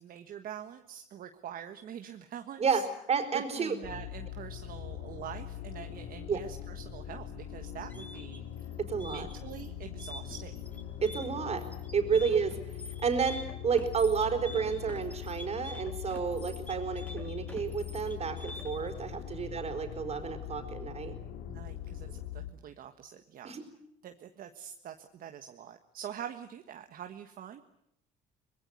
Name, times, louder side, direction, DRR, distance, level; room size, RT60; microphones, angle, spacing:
voice 1, 0.0-2.8 3.3-8.7 9.0-10.6 12.1-12.2 19.3-19.5 21.5-23.5 24.0-27.6, right 9 dB, 60° right, 7 dB, 1.5 m, -45 dB
voice 2, 2.6-3.7 6.3-6.4 8.8-9.3 11.0-11.6 11.9-12.6 13.0-21.1 23.4-23.6, right 6 dB, 40° right, 6 dB, 4.6 m, -31 dB
sound 1, 3.8-22.5, left 10 dB, 80° left, 2.6 m, -42 dB
sound 2, 7.8-19.0, left 1 dB, 10° left, 4.0 m, -48 dB
24.0 x 21.0 x 9.5 m, 0.77 s
cardioid pair, 110°, 17 cm